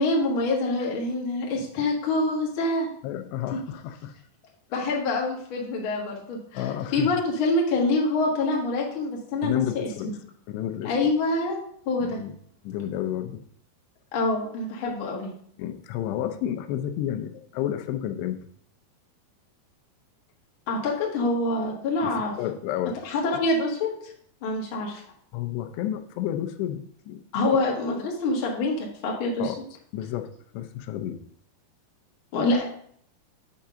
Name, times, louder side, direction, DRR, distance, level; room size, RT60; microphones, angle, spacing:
voice 1, 0.0-2.9 3.5-3.6 4.7-10.1 10.8-11.6 11.8-12.2 14.1-15.3 20.7-22.3 23.0-24.1 24.4-25.0 27.3-29.5 32.3-32.6, left 2 dB, 65° left, -1 dB, 1.2 m, -26 dB
voice 2, 3.0-4.1 6.5-7.2 9.4-10.1 10.5-10.9 12.0-12.4 12.6-13.5 15.6-18.4 22.0-23.0 25.3-27.2 29.4-29.6 29.9-31.2, left 11 dB, 85° left, 7 dB, 2.8 m, -31 dB
8.3 x 3.8 x 5.6 m, 0.63 s
omnidirectional pair, 4.8 m